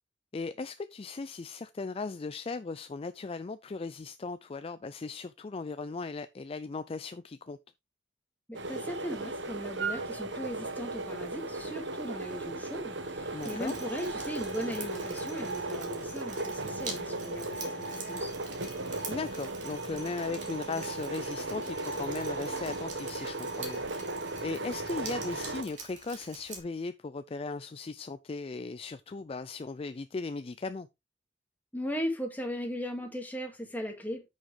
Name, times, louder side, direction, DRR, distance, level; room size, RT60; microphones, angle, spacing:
voice 1, 0.3-7.6 13.3-13.7 19.1-23.8 24.4-30.9, left 3 dB, 30° left, 0.4 m, -37 dB
voice 2, 8.5-18.3 31.7-34.2, equal, 10° left, 2.1 m, -38 dB
sound 1, 8.5-25.6, right 2 dB, 80° right, 1.3 m, -36 dB
Drip, 13.4-26.6, right 4 dB, 45° right, 3.0 m, -46 dB
9.7 x 6.4 x 3.3 m
head